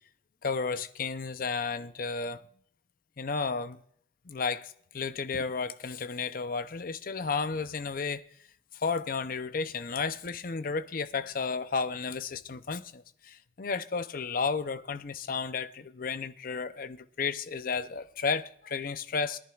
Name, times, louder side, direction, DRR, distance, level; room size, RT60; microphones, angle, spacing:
voice 1, 0.4-2.4 3.2-3.8 4.3-8.3 8.7-19.4, left 5 dB, 50° left, 0.6 m, -33 dB
22.5 x 11.0 x 2.4 m
head